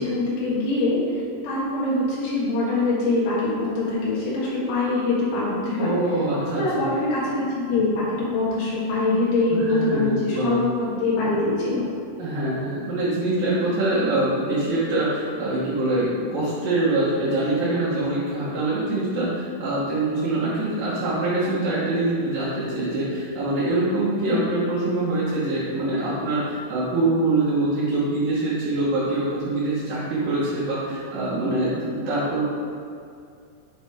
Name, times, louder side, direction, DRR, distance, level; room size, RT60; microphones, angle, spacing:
voice 1, 0.0-6.0 6.6-8.0 8.3-11.9 24.3-24.4, left 2 dB, 80° left, -8 dB, 3.8 m, -23 dB
voice 2, 5.8-6.8 9.7-10.6 12.2-32.4, right 2 dB, 70° right, -10 dB, 3.0 m, -24 dB
9.5 x 5.2 x 3.6 m, 2.3 s
omnidirectional pair, 4.3 m